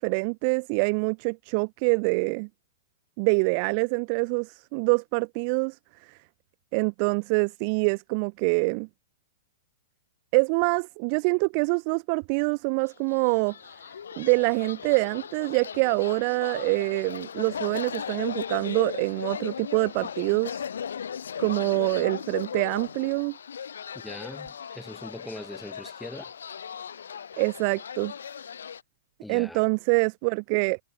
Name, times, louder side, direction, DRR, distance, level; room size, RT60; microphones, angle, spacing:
voice 1, 0.0-2.5 3.2-6.2 6.7-8.9 10.3-13.5 14.2-20.6 21.4-23.4 27.4-28.1 29.3-30.8, right 37 dB, 40° right, 1.0 m, -25 dB
sound 1, 13.0-28.8, left 7 dB, 90° left, 2.9 m, -37 dB
voice 2, 24.0-26.3 29.2-29.6, left 1 dB, 5° left, 5.8 m, -41 dB
hypercardioid pair, 145°, 0 cm